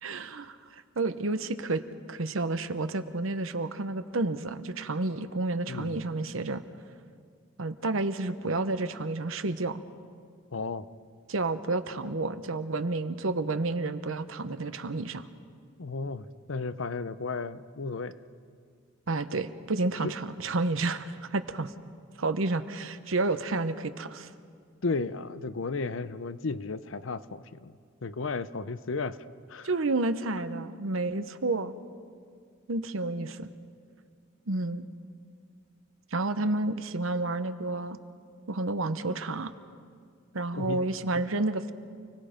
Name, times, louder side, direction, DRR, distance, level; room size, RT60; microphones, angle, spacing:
voice 1, 0.0-1.8 2.1-6.6 7.6-9.8 11.3-15.3 19.1-21.7 22.2-24.3 29.6-31.7 32.7-33.5 34.5-34.8 36.1-38.0 38.5-39.5 40.3-41.7, right 2 dB, 80° right, 11 dB, 0.9 m, -30 dB
voice 2, 5.7-6.0 10.5-10.9 15.8-18.2 20.0-20.1 24.8-27.7 28.0-29.2 29.5-29.7 40.5-40.8, left 4 dB, 70° left, 14 dB, 0.7 m, -34 dB
29.5 x 19.0 x 5.1 m, 2.1 s
head